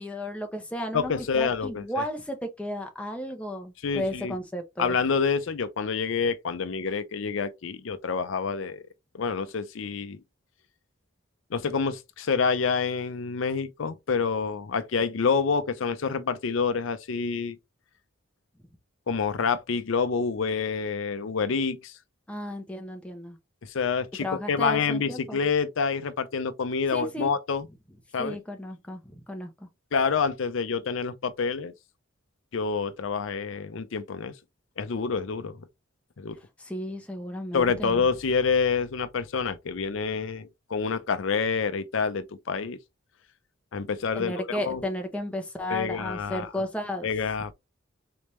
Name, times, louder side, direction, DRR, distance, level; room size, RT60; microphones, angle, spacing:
voice 1, 0.0-4.9 22.3-23.4 24.2-25.4 26.9-27.3 28.2-29.5 36.6-38.0 44.1-47.1, left 1 dB, 5° left, 0.7 m, -34 dB
voice 2, 0.9-2.0 3.8-4.3 4.8-8.8 9.1-10.2 11.5-17.6 19.1-21.9 23.6-27.7 28.1-28.4 29.9-31.7 32.5-34.3 34.8-35.6 36.2-36.4 37.5-42.8 43.7-44.8 45.7-46.5 47.0-47.5, left 5 dB, 70° left, 0.5 m, -27 dB
4.1 x 3.5 x 3.0 m
head